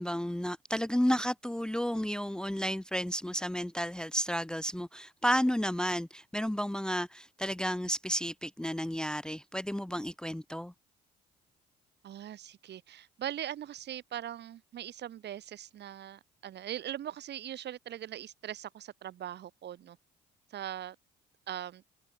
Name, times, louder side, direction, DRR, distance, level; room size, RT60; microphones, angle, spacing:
voice 1, 0.0-10.7, equal, 5° left, 1.0 m, -32 dB
voice 2, 12.0-20.0 20.5-21.0 21.5-21.8, right 11 dB, 55° right, 4.3 m, -41 dB
figure-of-eight pair, 50°, 21 cm